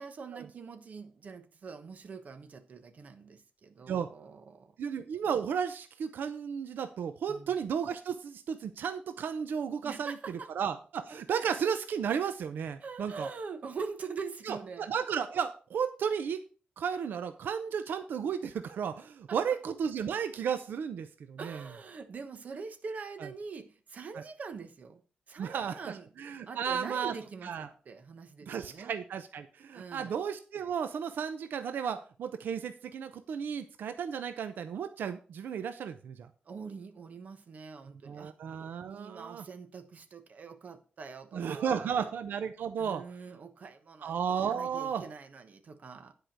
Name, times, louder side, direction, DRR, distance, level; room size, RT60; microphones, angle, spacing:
voice 1, 0.0-4.7 7.3-7.5 9.8-10.5 12.8-14.9 19.3-19.4 21.4-25.0 25.3-26.1 26.5-28.9 29.7-30.1 36.4-38.3 38.9-42.1 42.8-44.2 44.5-46.1, right 5 dB, 50° right, 1.2 m, -44 dB
voice 2, 4.8-10.1 10.5-13.3 14.5-16.4 16.8-21.6 23.2-23.3 24.1-24.2 25.4-25.8 26.2-27.1 27.4-27.7 28.5-36.3 38.0-39.4 41.3-43.0 44.0-45.0, right 7 dB, 90° right, 0.7 m, -34 dB
10.5 x 4.9 x 6.0 m
wide cardioid pair, 145°, 3 cm